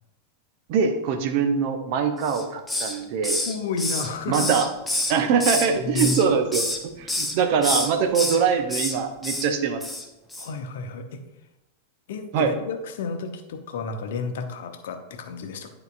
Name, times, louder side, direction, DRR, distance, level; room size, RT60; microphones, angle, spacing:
voice 1, 0.7-3.4 4.3-4.7 5.1-9.8 12.3-12.5, right 6 dB, 45° right, 6 dB, 0.7 m, -23 dB
Hiss, 2.2-3.0 3.2-5.7 6.0-6.8 7.1-7.3 7.6-8.4 8.7-9.0 9.2-9.5 9.8-10.0 10.3-10.5, left 1 dB, 5° left, 0.8 m, -27 dB
voice 2, 3.5-4.5 5.2-5.3 5.8-6.2 10.4-11.2 12.1-15.7, left 4 dB, 55° left, 6 dB, 0.8 m, -31 dB
10.5 x 4.8 x 2.5 m, 0.98 s
figure-of-eight pair, 90°, 0 cm